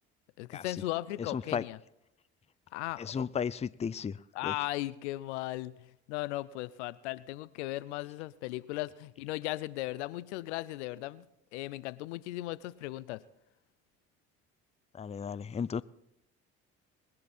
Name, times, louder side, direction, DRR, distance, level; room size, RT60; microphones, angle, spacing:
voice 1, 0.4-1.8 2.7-3.3 4.3-5.7 6.1-11.3 11.5-13.2, left 17 dB, 90° left, 0.6 m, -37 dB
voice 2, 1.2-1.6 3.0-4.5 14.9-15.8, left 7 dB, 20° left, 0.5 m, -35 dB
20.5 x 10.5 x 4.3 m
hypercardioid pair, 65°, 33 cm